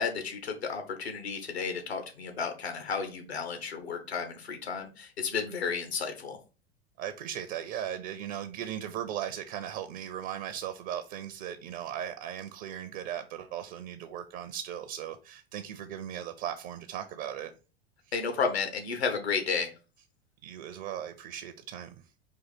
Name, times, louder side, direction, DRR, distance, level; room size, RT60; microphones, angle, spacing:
voice 1, 0.0-6.4 18.1-19.7, left 5 dB, 75° left, 1.1 m, -32 dB
voice 2, 7.0-17.5 20.4-22.0, right 10 dB, 45° right, 0.5 m, -37 dB
4.6 x 2.6 x 4.0 m
figure-of-eight pair, 85°, 32 cm